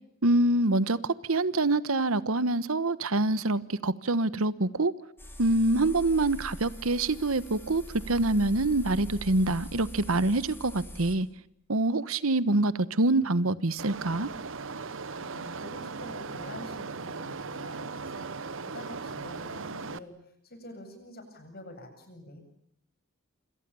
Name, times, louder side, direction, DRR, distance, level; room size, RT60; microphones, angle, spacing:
voice 1, 0.2-4.9 5.4-11.3 11.7-14.3, right 2 dB, 80° right, 1.2 m, -25 dB
sound 1, 5.2-11.2, equal, 10° left, 4.7 m, -42 dB
sound 2, 13.8-20.0, right 4 dB, 65° right, 1.1 m, -38 dB
voice 2, 15.2-22.4, left 1 dB, 45° left, 7.8 m, -47 dB
27.5 x 27.0 x 7.1 m
head